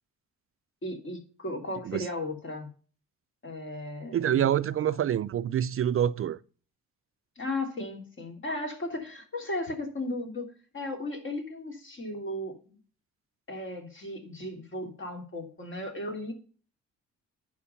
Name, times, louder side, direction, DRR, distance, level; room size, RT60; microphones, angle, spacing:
voice 1, 0.8-2.7 3.4-4.5 4.9-5.0 7.4-10.5 10.7-12.7 13.5-16.3, left 1 dB, 40° left, 3.2 m, -36 dB
voice 2, 4.1-6.4, right 10 dB, 45° right, 0.5 m, -26 dB
11.5 x 4.8 x 5.7 m
cardioid pair, 90°, 30 cm